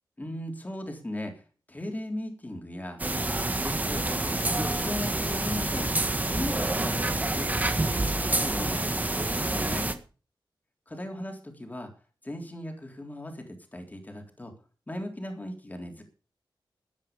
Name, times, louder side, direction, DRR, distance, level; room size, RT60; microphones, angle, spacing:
voice 1, 0.2-1.4 1.7-3.0 3.5-5.9 6.3-9.9 10.9-11.9 12.2-14.5 14.9-16.0, left 1 dB, 20° left, 3 dB, 3.6 m, -37 dB
sound 1, 3.0-9.9, right 2 dB, 20° right, 1.6 m, -28 dB
15.0 x 9.7 x 5.3 m, 0.37 s
wide cardioid pair, 115°, 8 cm